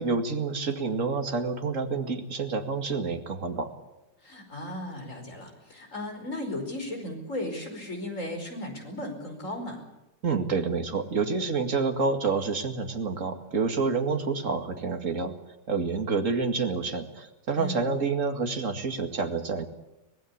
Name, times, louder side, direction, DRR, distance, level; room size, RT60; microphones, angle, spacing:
voice 1, 0.0-3.7 10.2-15.3 15.7-19.7, right 4 dB, 40° right, 6 dB, 2.5 m, -28 dB
voice 2, 4.2-9.8 17.6-17.9, left 1 dB, 40° left, 4 dB, 5.5 m, -36 dB
25.0 x 18.5 x 8.5 m, 0.96 s
omnidirectional pair, 2.0 m